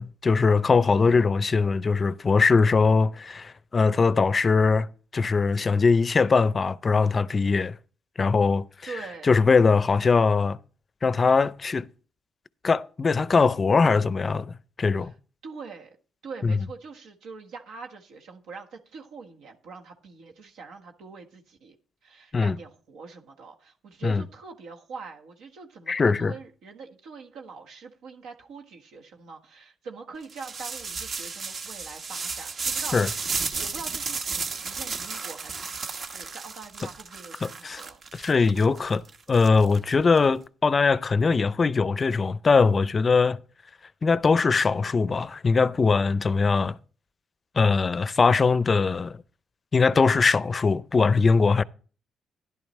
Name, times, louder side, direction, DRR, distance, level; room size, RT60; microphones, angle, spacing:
voice 1, 0.0-7.8 8.2-8.9 9.3-10.6 11.0-11.9 12.6-15.1 16.4-16.5 22.3-22.6 24.0-24.2 25.9-26.3 32.9-33.1 37.4-37.8 38.1-39.0 39.3-43.4 44.0-46.8 47.6-49.2 49.7-51.6, left 4 dB, 35° left, 0.5 m, -21 dB
voice 2, 0.9-1.3 8.8-9.3 15.0-15.1 15.4-16.0 16.2-21.7 22.0-33.2 33.5-35.7 36.1-38.0 38.4-38.8, right 4 dB, 85° right, 1.4 m, -43 dB
sound 1, 30.3-40.2, right 4 dB, 50° right, 1.1 m, -33 dB
12.5 x 11.0 x 3.2 m
cardioid pair, 90°, 0 cm